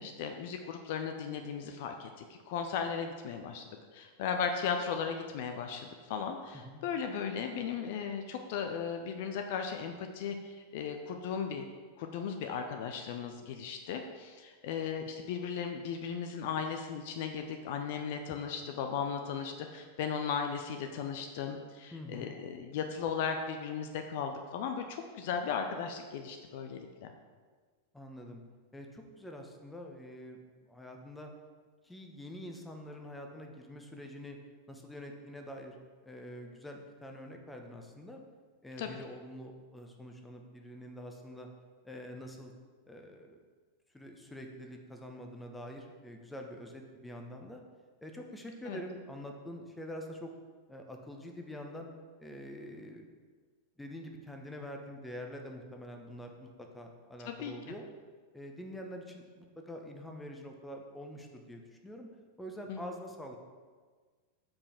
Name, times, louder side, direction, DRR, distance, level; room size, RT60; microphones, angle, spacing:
voice 1, 0.0-3.7 3.9-11.6 12.0-27.1 38.8-39.0 48.7-48.8 57.3-57.5 62.7-62.8, left 6 dB, 50° left, 5 dB, 0.6 m, -36 dB
voice 2, 21.9-22.4 27.9-28.4 28.7-30.4 30.7-31.3 31.8-34.4 34.7-35.8 36.0-38.2 38.6-41.5 41.8-42.5 42.8-43.4 43.9-47.6 48.0-50.3 50.7-51.9 52.2-53.0 53.8-57.9 58.3-62.1 62.4-63.4, equal, 5° left, 2 dB, 1.1 m, -45 dB
7.2 x 5.1 x 5.7 m, 1.5 s
figure-of-eight pair, 90°, 0 cm